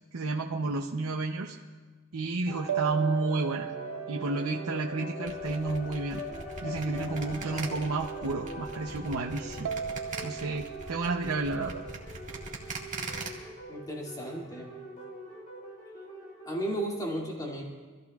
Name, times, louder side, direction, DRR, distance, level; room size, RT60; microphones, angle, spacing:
voice 1, 0.1-1.6 2.1-3.7 4.1-6.2 6.6-9.7 10.2-11.8, right 3 dB, 75° right, 0 dB, 0.8 m, -31 dB
sound 1, 2.5-16.9, equal, 35° left, 3.3 m, -42 dB
sound 2, 2.7-6.2 9.7-12.7, right 9 dB, 60° right, 0.3 m, -38 dB
sound 3, 5.3-13.3, right 3 dB, 35° right, 1.8 m, -41 dB
voice 2, 13.7-14.7 16.5-17.6, right 1 dB, 15° left, -3 dB, 2.5 m, -34 dB
26.0 x 15.0 x 2.4 m, 1.4 s
head